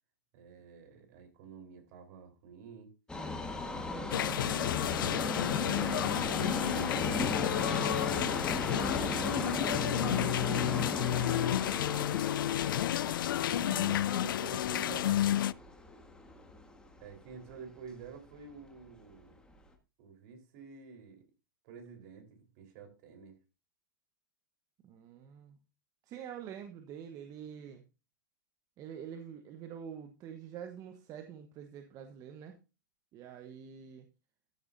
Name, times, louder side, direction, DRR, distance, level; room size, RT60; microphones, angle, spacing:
voice 1, 0.3-2.9 3.6-8.4 9.0-12.2 17.0-19.4 20.0-21.2 21.6-23.4, right 5 dB, 50° right, 4 dB, 4.2 m, -51 dB
Subway metro underground, 3.1-17.2 17.5-17.6 18.4-18.5 18.8-18.9 19.6-19.7, left 2 dB, 5° left, 1.6 m, -37 dB
sound 1, 4.1-15.5, left 12 dB, 75° left, 0.4 m, -31 dB
voice 2, 9.1-9.8 13.5-15.5 24.8-25.6 26.0-27.8 28.8-32.6 33.1-34.1, right 8 dB, 30° right, 6 dB, 1.2 m, -46 dB
13.5 x 8.8 x 2.7 m, 0.29 s
hypercardioid pair, 135°, 11 cm